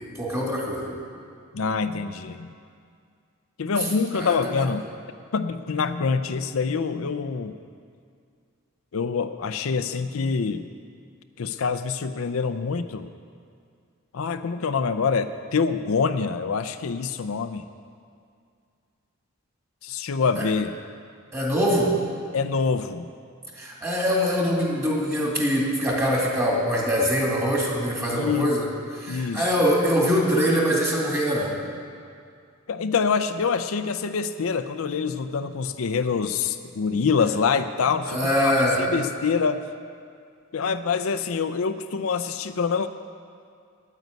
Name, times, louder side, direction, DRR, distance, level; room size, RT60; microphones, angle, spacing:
voice 1, 0.1-1.0 4.1-4.6 20.4-20.5 21.3-21.9 23.6-28.7 29.0-31.5 38.1-38.8, equal, 15° right, -3 dB, 2.5 m, -23 dB
voice 2, 1.5-2.5 3.6-4.8 5.3-7.5 8.9-10.7 11.4-13.1 14.1-17.6 19.8-20.7 22.3-23.1 28.1-28.5 29.1-29.4 32.7-38.5 38.8-39.6 40.5-42.9, left 5 dB, 75° left, 10 dB, 0.5 m, -25 dB
9.3 x 9.2 x 9.3 m, 2.3 s
head